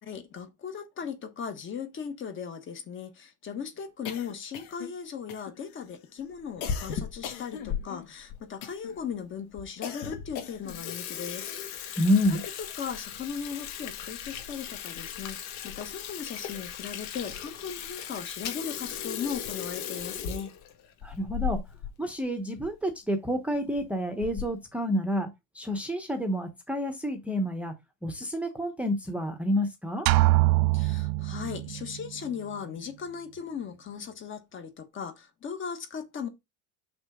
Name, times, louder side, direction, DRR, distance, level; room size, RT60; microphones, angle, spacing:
voice 1, 0.0-12.0 12.3-20.5 30.7-36.3, left 7 dB, 25° left, 1.3 m, -38 dB
sound 1, 4.0-5.0 5.3-5.8 6.6-8.1 8.6-9.0 9.8-10.8, left 8 dB, 90° left, 2.3 m, -40 dB
Water tap faucet / Sink (filling or washing), 6.4-7.8 8.3-8.4 9.1-9.2 9.6-9.7 10.0-10.2 10.5-21.9 22.2-22.3 22.6-22.7 23.5-23.8 24.2-24.6, left 8 dB, 60° left, 1.9 m, -37 dB
voice 2, 12.0-12.4 21.0-21.6 22.0-25.3 25.5-27.7 28.0-30.1, equal, 5° right, 1.0 m, -29 dB
sound 2, 30.1-31.9, right 19 dB, 55° right, 0.5 m, -23 dB
6.6 x 6.1 x 3.6 m
cardioid pair, 165°, 43 cm